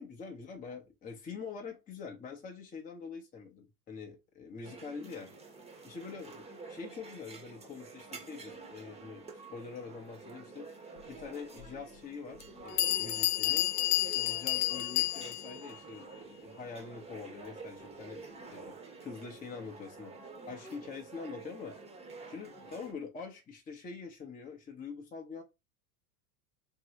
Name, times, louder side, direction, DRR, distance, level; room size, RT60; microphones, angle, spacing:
voice 1, 0.0-5.3 5.8-9.2 9.5-10.8 11.1-13.7 14.0-18.2 18.5-18.7 19.0-20.1 20.5-21.8 22.3-25.4, left 5 dB, 15° left, 0.7 m, -45 dB
sound 1, 4.6-22.9, right 4 dB, 15° right, 0.8 m, -49 dB
Bell, 11.6-11.7 12.4-12.5 12.8-15.6, left 17 dB, 65° left, 0.5 m, -30 dB
3.0 x 2.7 x 2.8 m
hypercardioid pair, 95°, 47 cm